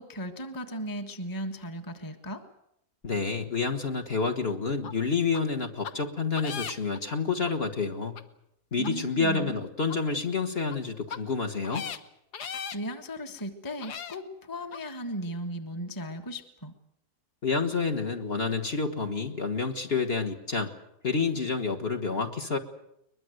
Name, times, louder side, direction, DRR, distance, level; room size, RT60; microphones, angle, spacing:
voice 1, 0.0-2.4 8.8-9.5 12.7-16.7, equal, 15° left, 6 dB, 1.4 m, -36 dB
voice 2, 3.0-8.2 8.7-11.9 17.4-20.7 21.0-22.6, left 4 dB, 40° left, 4 dB, 1.7 m, -29 dB
sound 1, 4.8-4.9 5.3-5.4 5.8-5.9 6.4-7.0 7.5-7.6 8.2-8.3 8.8-8.9 9.4-9.5 9.9-10.0 10.6-10.8 11.1-11.2 11.6-12.0 12.3-12.8 13.4-13.5 13.8-14.2 14.7-14.8, left 7 dB, 70° left, 1.7 m, -37 dB
22.5 x 21.5 x 8.0 m, 0.79 s
omnidirectional pair, 1.8 m